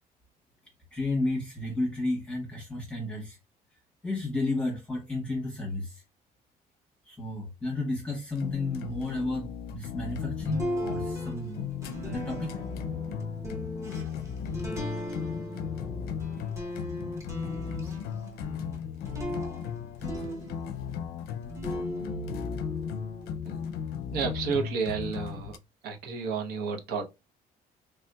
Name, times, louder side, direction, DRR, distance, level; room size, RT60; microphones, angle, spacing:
voice 1, 0.9-3.4 4.0-6.0 7.1-11.8 12.0-12.5, left 2 dB, 5° left, 1.0 m, -32 dB
sound 1, 8.4-25.6, left 7 dB, 85° left, 0.4 m, -36 dB
sound 2, 10.4-21.0 21.4-23.8, equal, 20° right, 0.8 m, -38 dB
voice 2, 24.1-25.6 25.8-27.0, right 5 dB, 85° right, 0.8 m, -31 dB
3.4 x 2.7 x 2.2 m
cardioid pair, 180°, 16 cm